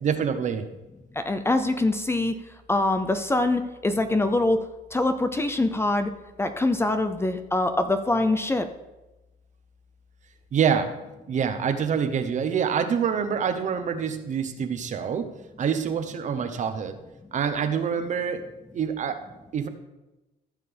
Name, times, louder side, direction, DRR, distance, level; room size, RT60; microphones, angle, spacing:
voice 1, 0.0-0.7 10.5-11.0 11.3-15.3 15.6-17.0 17.3-18.4 18.7-19.2 19.5-19.7, right 7 dB, 45° right, 9 dB, 0.9 m, -26 dB
voice 2, 1.1-2.4 2.7-4.6 4.9-6.1 6.4-8.7, left 2 dB, 15° left, 8 dB, 0.5 m, -24 dB
15.0 x 6.6 x 3.4 m, 1.0 s
cardioid pair, 110°, 17 cm